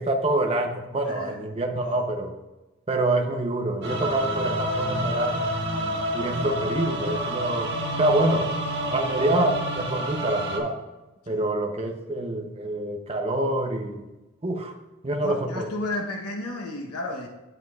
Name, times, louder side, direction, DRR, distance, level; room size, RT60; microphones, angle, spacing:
voice 1, 0.0-2.3 2.9-5.5 6.1-7.7 8.0-8.5 8.9-10.8 11.3-14.0 14.4-14.7 15.0-15.7, right 1 dB, 25° right, 3 dB, 0.7 m, -26 dB
voice 2, 1.0-1.4 1.8-2.0 5.8-6.0 11.3-11.5 15.2-17.3, left 2 dB, 80° left, 2 dB, 1.0 m, -33 dB
sound 1, 3.8-10.6, equal, 50° right, 1.5 m, -29 dB
9.6 x 7.9 x 2.4 m, 1.1 s
head